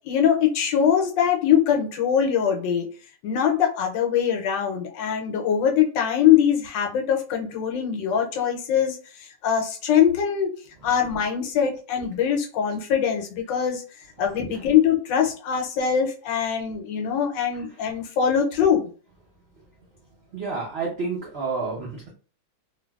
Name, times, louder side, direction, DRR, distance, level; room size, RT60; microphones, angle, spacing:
voice 1, 0.0-2.9 3.2-10.5 10.8-13.8 14.2-18.9, left 8 dB, 80° left, 3 dB, 1.3 m, -22 dB
voice 2, 20.3-22.1, right 4 dB, 80° right, -3 dB, 0.5 m, -30 dB
3.0 x 2.5 x 2.3 m, 0.38 s
omnidirectional pair, 2.0 m